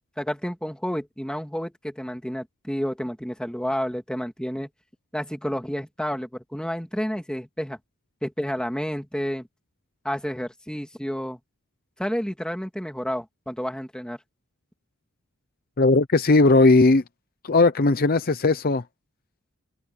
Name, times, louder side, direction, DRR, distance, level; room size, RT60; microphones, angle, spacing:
voice 1, 0.2-4.7 5.1-7.8 8.2-9.5 10.0-11.4 12.0-14.2, equal, 5° left, 2.7 m, -30 dB
voice 2, 15.8-17.0 17.4-18.8, left 3 dB, 45° left, 0.7 m, -18 dB
open air
head